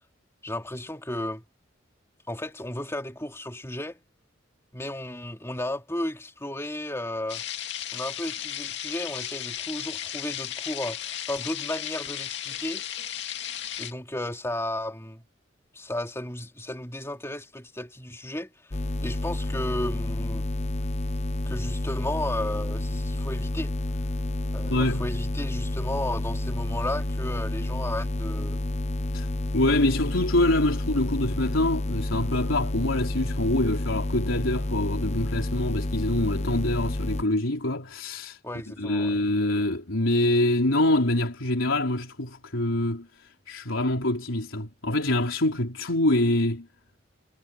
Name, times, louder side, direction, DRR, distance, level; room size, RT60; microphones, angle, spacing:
voice 1, 0.4-1.4 2.3-4.0 4.7-7.4 7.9-12.8 13.8-15.2 15.7-18.5 19.0-20.5 21.4-23.7 24.5-28.6 38.4-39.2, left 1 dB, 15° left, 3.2 m, -34 dB
sound 1, 7.3-13.9, left 10 dB, 60° left, 2.4 m, -35 dB
sound 2, 18.7-37.2, left 1 dB, 35° left, 0.9 m, -29 dB
voice 2, 24.7-25.1 29.1-29.3 29.5-38.4 38.7-46.7, left 1 dB, 90° left, 4.0 m, -25 dB
head